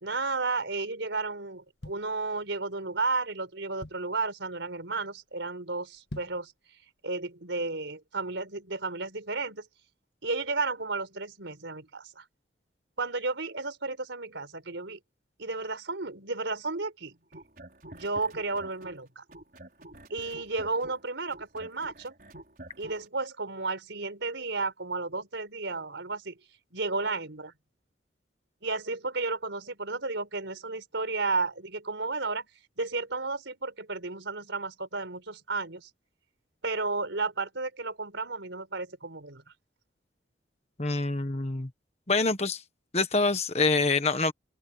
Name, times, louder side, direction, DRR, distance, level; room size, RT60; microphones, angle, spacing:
voice 1, 0.0-6.5 7.0-9.7 10.2-12.2 13.0-15.0 15.4-17.2 18.0-19.2 20.1-22.1 22.8-26.4 26.7-27.5 28.6-32.5 32.8-35.9 36.6-39.4, right 3 dB, 85° right, 4.3 m, -33 dB
sound 1, 1.5-2.8 3.3-3.4 3.5-4.3 4.8-5.0 5.3-5.4 5.9-6.5 7.0-7.1, left 1 dB, 65° left, 2.1 m, -45 dB
sound 2, 17.2-19.0 19.3-23.0, right 1 dB, 50° right, 5.7 m, -48 dB
voice 2, 40.8-41.7 42.1-42.6 42.9-44.3, left 3 dB, 35° left, 1.4 m, -26 dB
head